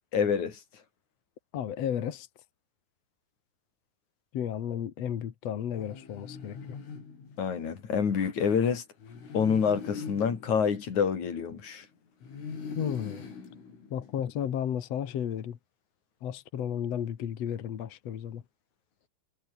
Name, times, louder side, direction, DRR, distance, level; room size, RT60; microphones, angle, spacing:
voice 1, 0.1-0.6 7.4-8.8 9.3-11.9, left 6 dB, 40° left, 4.0 m, -27 dB
voice 2, 1.5-2.3 4.3-6.8 12.7-13.2 13.9-15.6 16.2-18.4, left 9 dB, 65° left, 1.6 m, -33 dB
sound 1, 5.7-7.9 9.0-11.7 12.2-14.5, left 5 dB, 85° left, 9.8 m, -42 dB
omnidirectional pair, 5.6 m